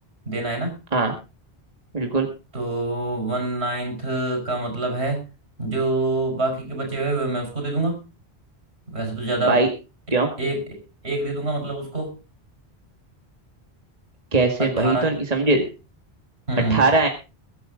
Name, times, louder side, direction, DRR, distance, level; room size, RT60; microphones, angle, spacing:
voice 1, 0.3-0.8 2.5-5.2 5.6-8.1 8.9-9.6 10.4-12.1 14.6-15.1 16.5-16.9, right 2 dB, 80° right, 4 dB, 5.4 m, -26 dB
voice 2, 1.9-2.3 9.4-9.7 10.1-10.3 14.3-15.7 16.7-17.1, right 3 dB, 35° right, 3 dB, 2.0 m, -20 dB
22.0 x 8.9 x 3.9 m, 0.31 s
omnidirectional pair, 1.1 m